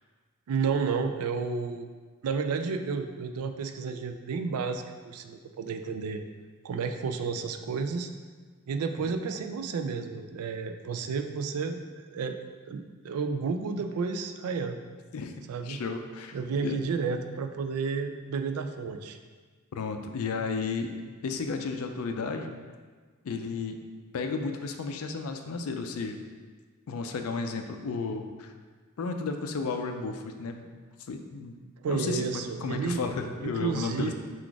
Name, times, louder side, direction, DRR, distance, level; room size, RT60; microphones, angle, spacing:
voice 1, 0.5-1.9 2.2-6.2 6.6-8.1 8.7-12.4 12.7-14.8 15.5-15.8 16.3-19.2 31.8-33.0 33.4-34.1, right 5 dB, 85° right, 7 dB, 0.4 m, -31 dB
voice 2, 15.6-16.4 16.6-16.8 19.7-20.9 21.2-22.5 23.2-23.8 24.1-26.2 26.9-28.5 29.0-30.7 31.1-31.5 31.9-34.1, left 4 dB, 75° left, 6 dB, 0.4 m, -33 dB
3.9 x 2.4 x 4.6 m, 1.5 s
head